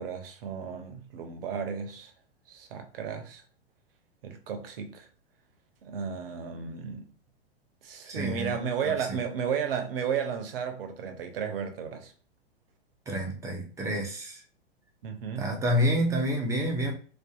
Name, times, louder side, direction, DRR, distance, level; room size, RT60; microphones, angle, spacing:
voice 1, 0.0-2.1 2.5-3.4 4.2-5.1 5.8-7.1 7.8-12.1 15.0-15.5, right 7 dB, 60° right, 0.6 m, -33 dB
voice 2, 8.1-8.6 8.8-8.9 13.1-14.4 15.4-16.9, equal, 10° right, 0.4 m, -28 dB
2.5 x 2.3 x 2.3 m
figure-of-eight pair, 100°, 32 cm